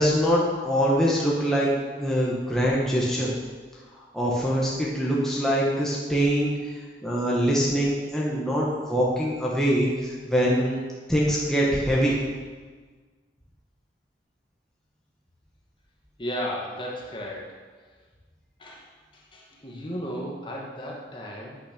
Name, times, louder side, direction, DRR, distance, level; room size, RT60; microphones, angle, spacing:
voice 1, 0.0-1.7 2.0-3.3 3.9-6.7 7.0-10.8 11.1-12.1, equal, 5° left, -6 dB, 1.8 m, -24 dB
voice 2, 16.2-17.5 18.6-21.6, equal, 30° left, -2 dB, 2.0 m, -35 dB
9.9 x 9.2 x 7.0 m, 1.5 s
head